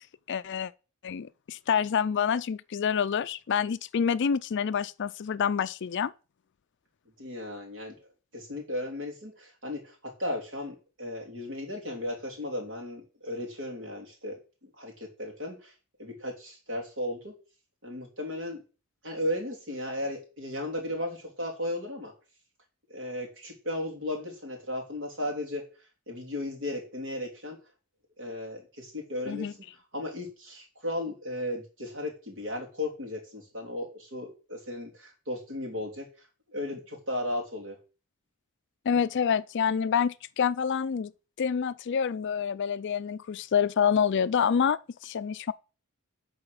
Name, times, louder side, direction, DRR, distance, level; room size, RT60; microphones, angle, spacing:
voice 1, 0.3-0.7 1.0-6.1 29.3-29.5 38.9-41.1 41.4-45.5, left 7 dB, 55° left, 0.4 m, -27 dB
voice 2, 7.2-7.9 8.3-15.7 16.0-17.3 17.8-18.6 19.0-22.1 22.9-25.6 26.1-27.6 28.2-29.5 29.9-36.1 36.5-37.8, left 1 dB, 55° right, 3.2 m, -35 dB
10.5 x 4.3 x 6.4 m
head